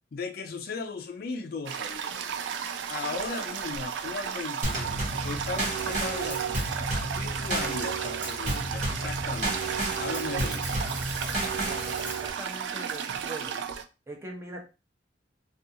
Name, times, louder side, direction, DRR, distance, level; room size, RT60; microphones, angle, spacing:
voice 1, 0.1-2.2 2.9-4.8 5.2-6.6 7.1-10.8, left 4 dB, 55° left, 0.4 m, -37 dB
Toilet flush, 1.6-13.8, right 7 dB, 85° right, 0.3 m, -34 dB
Drum kit / Snare drum / Bass drum, 4.6-12.3, right 2 dB, 45° right, 1.0 m, -32 dB
voice 2, 11.6-13.8 14.1-14.6, right 2 dB, 15° right, 0.6 m, -42 dB
2.5 x 2.3 x 2.7 m
head